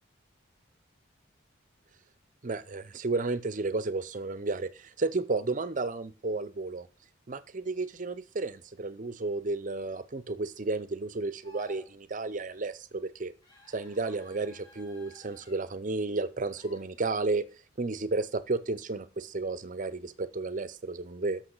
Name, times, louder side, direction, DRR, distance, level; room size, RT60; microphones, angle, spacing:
voice 1, 2.4-6.9 7.3-13.3 13.7-17.5 17.8-21.4, right 3 dB, 40° right, 15 dB, 0.6 m, -32 dB
sound 1, 11.4-11.9 13.4-15.6 16.5-16.8, left 2 dB, 20° left, 3.2 m, -54 dB
11.5 x 6.6 x 3.9 m, 0.35 s
head